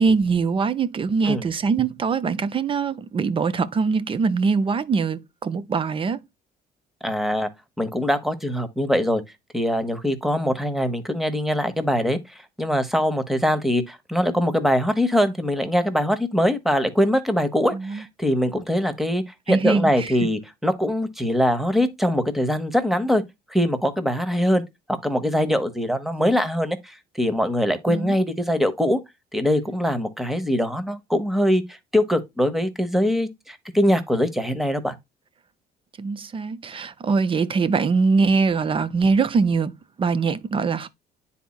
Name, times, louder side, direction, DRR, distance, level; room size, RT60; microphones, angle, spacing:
voice 1, 0.0-6.2 17.7-18.0 19.5-20.1 27.9-28.1 36.0-40.9, right 4 dB, 30° right, 0.6 m, -22 dB
voice 2, 7.0-7.5 7.8-9.2 9.5-23.2 23.5-24.6 24.9-29.0 29.3-35.0, equal, ahead, 1.0 m, -22 dB
10.0 x 4.2 x 2.3 m
cardioid pair, 110°, 17 cm